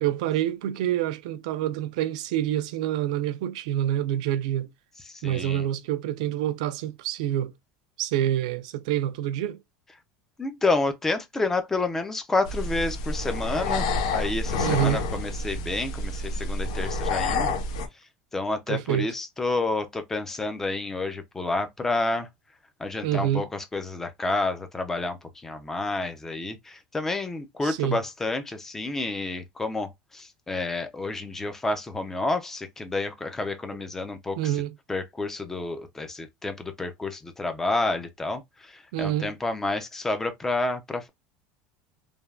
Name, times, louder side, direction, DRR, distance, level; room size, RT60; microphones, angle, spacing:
voice 1, 0.0-4.7 5.2-7.5 8.0-9.6 14.6-15.0 18.7-19.1 23.0-23.5 27.6-28.0 34.4-34.7 38.9-39.3, right 12 dB, 80° right, 0.4 m, -27 dB
voice 2, 5.1-5.7 10.4-13.9 14.1-17.5 18.3-22.3 22.8-34.5 34.9-41.1, left 3 dB, 10° left, 0.4 m, -29 dB
sound 1, 12.4-17.9, left 3 dB, 85° left, 0.6 m, -28 dB
3.3 x 2.2 x 2.2 m
cardioid pair, 155°, 4 cm